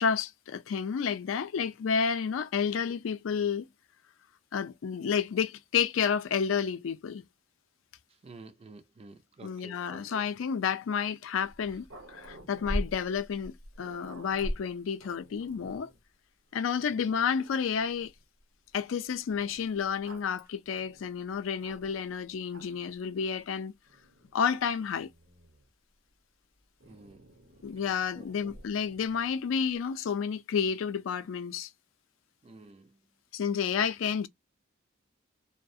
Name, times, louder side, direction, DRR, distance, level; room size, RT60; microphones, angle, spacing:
voice 1, 0.0-3.7 4.5-7.2 9.4-15.9 16.5-18.1 18.7-23.7 24.3-25.1 27.6-31.7 33.3-34.3, left 6 dB, 75° left, 0.4 m, -30 dB
voice 2, 8.2-10.3 16.9-17.2 26.8-27.4 27.8-28.5 32.4-33.0, right 3 dB, 30° right, 0.4 m, -51 dB
Growling, 11.4-16.0 16.7-16.8 17.1-18.2 19.3-22.1 22.5-23.0 23.9-25.7 26.8-29.3, equal, 70° right, 0.8 m, -43 dB
2.3 x 2.1 x 2.6 m
head